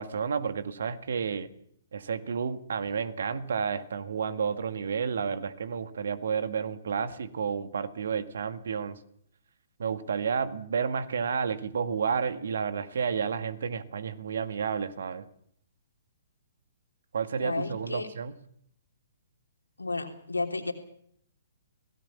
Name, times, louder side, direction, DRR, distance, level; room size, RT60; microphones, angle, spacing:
voice 1, 0.0-1.5 1.9-9.0 9.8-15.3 17.1-18.3, right 6 dB, 60° right, 12 dB, 1.8 m, -31 dB
voice 2, 17.4-18.1 19.8-20.7, left 3 dB, 80° left, 4 dB, 3.3 m, -32 dB
25.0 x 17.5 x 7.2 m, 0.69 s
figure-of-eight pair, 120°, 0 cm